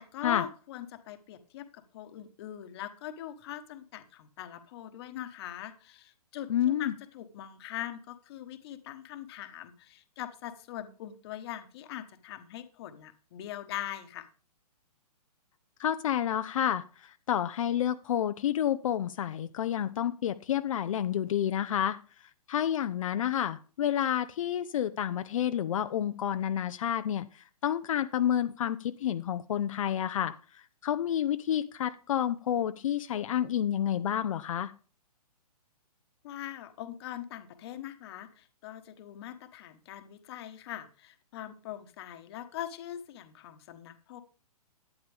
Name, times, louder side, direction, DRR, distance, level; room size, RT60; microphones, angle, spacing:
voice 1, 0.0-14.3 36.2-44.2, left 11 dB, 40° left, 9 dB, 1.3 m, -42 dB
voice 2, 6.5-6.9 15.8-22.0 22.5-34.7, left 10 dB, 55° left, 10 dB, 0.7 m, -29 dB
12.0 x 9.3 x 3.5 m, 0.36 s
hypercardioid pair, 145°, 20 cm